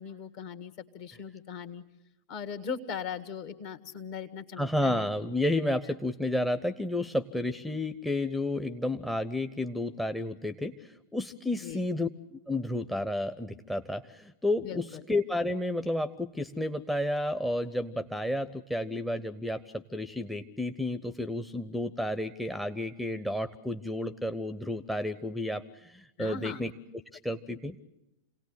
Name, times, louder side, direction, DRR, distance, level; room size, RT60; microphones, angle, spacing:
voice 1, 0.0-1.8 2.3-5.1 11.5-11.8 14.6-15.0 26.2-26.6, left 6 dB, 50° left, 8 dB, 1.7 m, -39 dB
voice 2, 4.6-12.1 12.5-26.7 27.2-27.8, left 1 dB, ahead, 16 dB, 0.8 m, -31 dB
27.5 x 18.0 x 8.0 m, 0.90 s
figure-of-eight pair, 90°, 0 cm